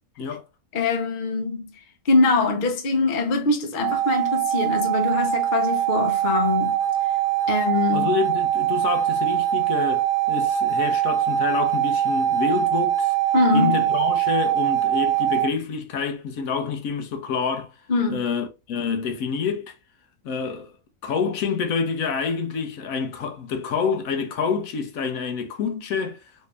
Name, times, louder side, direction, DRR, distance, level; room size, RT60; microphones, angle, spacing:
voice 1, 0.7-1.7 2.1-6.7 7.5-8.1 13.3-13.9 17.9-18.2, left 3 dB, 45° left, 0.7 m, -23 dB
sound 1, 3.8-15.5, right 11 dB, 70° right, 1.0 m, -22 dB
voice 2, 7.9-13.1 13.5-17.7 18.1-19.7 20.2-20.7 21.0-26.2, left 6 dB, 70° left, 1.0 m, -27 dB
3.2 x 2.7 x 3.2 m
omnidirectional pair, 1.5 m